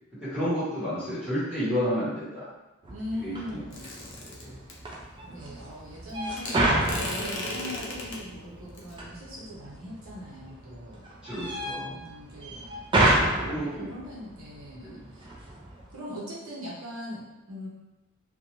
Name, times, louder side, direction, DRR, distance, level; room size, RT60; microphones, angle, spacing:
voice 1, 0.2-2.5 3.2-3.6 4.2-4.6 11.2-11.9 13.4-13.9 14.8-15.1, equal, 5° right, -12 dB, 1.1 m, -31 dB
sound 1, 2.8-16.0, right 1 dB, 25° right, 0.4 m, -31 dB
voice 2, 2.9-3.9 5.2-11.0 11.8-15.3 15.9-17.7, left 1 dB, 70° right, -7 dB, 0.8 m, -40 dB
sound 2, 3.7-4.7 6.4-8.2 8.8-9.0, left 2 dB, 60° left, 0.6 m, -35 dB
2.5 x 2.2 x 2.9 m, 1.0 s
head